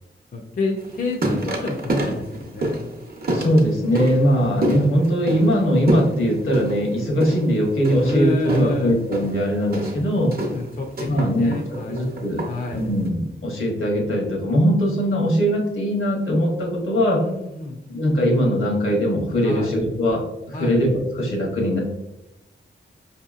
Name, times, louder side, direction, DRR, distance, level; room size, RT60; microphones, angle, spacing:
voice 1, 0.3-2.9 4.1-4.4 8.0-9.0 10.5-12.0 12.5-12.9 17.2-17.8 19.4-19.8 20.5-20.8, left 2 dB, 40° left, 1 dB, 0.4 m, -29 dB
sound 1, 0.8-13.1, right 1 dB, 45° right, 0.7 m, -28 dB
voice 2, 3.3-10.3 11.0-11.5 11.9-12.4 12.7-17.2 17.9-21.8, equal, 75° left, 0 dB, 1.0 m, -21 dB
4.9 x 2.8 x 2.4 m, 0.92 s
wide cardioid pair, 115°, 21 cm